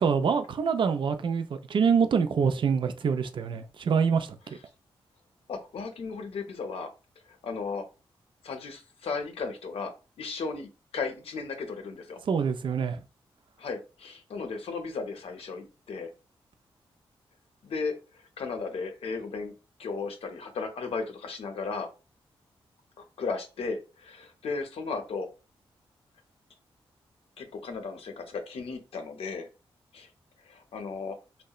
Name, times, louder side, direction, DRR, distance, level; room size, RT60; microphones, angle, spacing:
voice 1, 0.0-4.4 12.3-13.0, right 6 dB, 55° right, 0.4 m, -25 dB
voice 2, 5.5-6.9 7.4-7.8 8.4-12.2 13.6-16.1 17.6-19.5 19.8-21.9 23.0-25.3 27.4-29.5 29.9-30.1 30.4-31.2, left 4 dB, 70° left, 0.6 m, -35 dB
2.8 x 2.1 x 2.3 m
cardioid pair, 50°, 10 cm